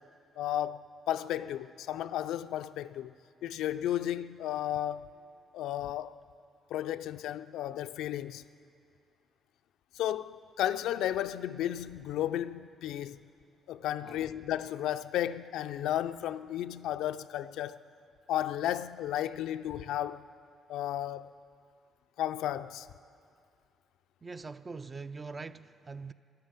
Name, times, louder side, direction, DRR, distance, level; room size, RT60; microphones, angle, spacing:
voice 1, 0.4-3.1 3.4-5.1 5.5-6.2 6.7-8.4 9.9-13.2 13.7-17.8 18.3-20.3 20.7-21.4 22.2-22.9, left 12 dB, 85° left, 0.4 m, -33 dB
voice 2, 24.2-26.1, right 4 dB, 30° right, 0.4 m, -43 dB
13.5 x 11.5 x 8.8 m
cardioid pair, 90°, 0 cm